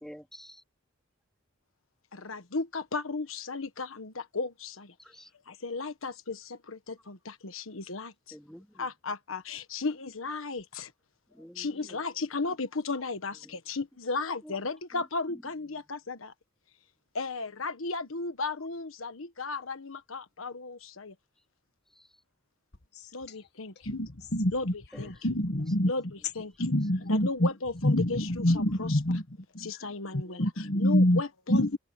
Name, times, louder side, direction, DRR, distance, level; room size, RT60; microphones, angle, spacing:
voice 1, 0.0-0.6 5.0-5.3 8.3-8.8 11.4-12.0 30.3-30.4, equal, 5° left, 2.6 m, -49 dB
voice 2, 2.1-4.9 5.5-8.4 8.8-10.9 11.5-16.3 17.1-21.1 23.1-23.9 24.5-24.7 25.0-25.1 25.9-26.1 26.3-26.5 27.1-29.0 29.6-31.8, left 3 dB, 80° left, 1.4 m, -35 dB
voice 3, 23.9-24.7 25.1-25.9 26.6-27.5 27.8-29.2 29.5-31.2 31.5-31.8, left 1 dB, 55° left, 1.7 m, -26 dB
open air
head